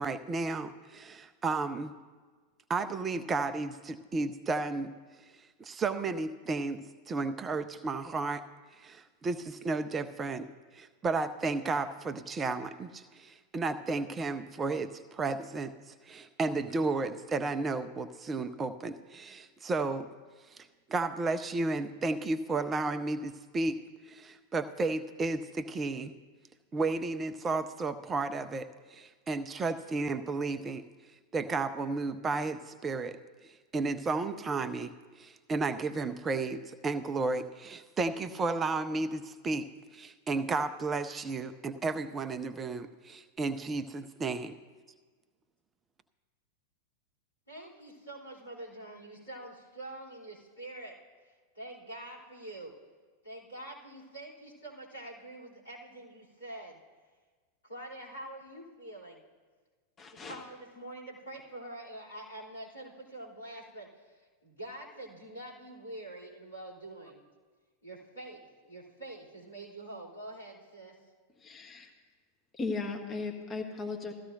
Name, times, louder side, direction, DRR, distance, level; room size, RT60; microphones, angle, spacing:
voice 1, 0.0-1.9 2.7-4.9 5.6-8.4 8.8-10.5 10.7-20.1 20.9-23.8 24.1-26.1 26.7-30.8 31.3-39.7 39.9-44.6, right 3 dB, 20° right, 10 dB, 0.5 m, -33 dB
voice 2, 47.5-51.0 51.5-52.7 53.2-56.8 57.6-59.2 60.1-64.1 64.4-67.2 67.8-70.9, right 1 dB, 75° left, -7 dB, 3.2 m, -45 dB
voice 3, 60.0-60.4 71.4-71.9 72.5-74.1, left 3 dB, 25° left, 2 dB, 1.3 m, -36 dB
16.5 x 14.0 x 2.6 m, 1.4 s
figure-of-eight pair, 90°, 0 cm